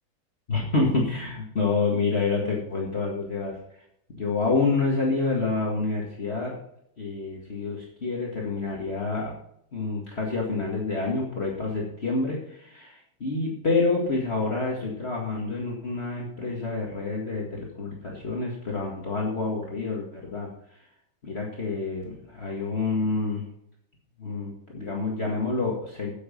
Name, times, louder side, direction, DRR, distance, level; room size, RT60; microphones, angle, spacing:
voice 1, 0.5-3.6 4.1-6.5 7.0-9.3 9.7-20.5 21.2-23.4 24.2-26.1, left 3 dB, 35° left, -3 dB, 2.1 m, -28 dB
11.0 x 8.1 x 5.3 m, 0.73 s
omnidirectional pair, 2.2 m